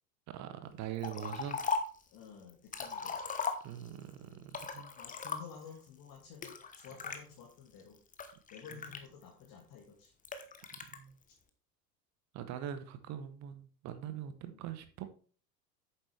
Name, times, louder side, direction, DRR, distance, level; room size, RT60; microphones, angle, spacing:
voice 1, 0.3-1.6 3.6-4.9 8.7-8.8 10.9-11.2 12.3-15.0, right 10 dB, 35° right, 0.9 m, -42 dB
Liquid, 1.0-2.0 2.5-4.0 4.5-5.7 6.4-7.2 7.8-9.5 10.2-11.0, left 5 dB, 15° left, 1.0 m, -38 dB
voice 2, 2.1-3.3 5.0-8.0 8.5-10.1 14.4-14.6, left 7 dB, 40° left, 2.1 m, -52 dB
8.9 x 7.3 x 3.3 m
figure-of-eight pair, 75°, 49 cm